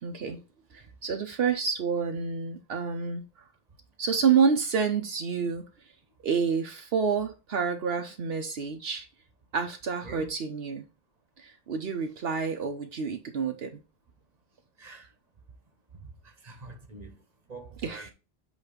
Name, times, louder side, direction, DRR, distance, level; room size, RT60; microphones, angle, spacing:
voice 1, 0.0-0.4 0.7-3.4 4.0-5.9 6.2-9.1 9.5-10.8 11.4-13.8 17.8-18.1, right 6 dB, 75° right, 1.0 m, -28 dB
voice 2, 14.8-15.1 15.9-18.1, right 3 dB, 40° right, 1.3 m, -46 dB
8.2 x 3.2 x 5.0 m
omnidirectional pair, 1.0 m